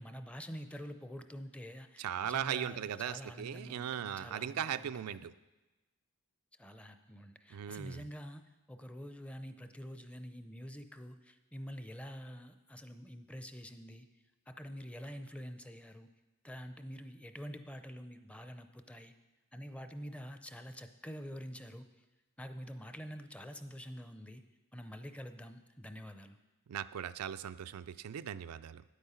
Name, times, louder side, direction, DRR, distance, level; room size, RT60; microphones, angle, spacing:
voice 1, 0.0-5.2 6.6-14.1 14.5-16.1 16.4-19.1 19.5-21.9 22.4-24.4 24.7-26.4, equal, 5° left, 9 dB, 0.5 m, -47 dB
voice 2, 2.0-5.3 7.5-8.1 26.7-28.8, right 9 dB, 90° right, 12 dB, 0.4 m, -38 dB
9.6 x 8.3 x 5.7 m, 1.1 s
head